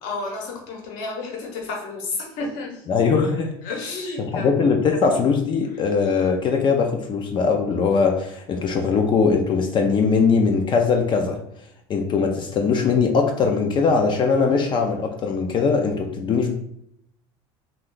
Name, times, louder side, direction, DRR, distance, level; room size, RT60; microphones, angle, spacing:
voice 1, 0.0-2.8 3.6-4.6, left 3 dB, 75° left, 0 dB, 1.0 m, -31 dB
voice 2, 2.9-3.5 4.3-11.4 11.9-16.5, left 5 dB, 40° left, 3 dB, 0.4 m, -20 dB
2.5 x 2.2 x 3.7 m, 0.72 s
supercardioid pair, 110°, 13 cm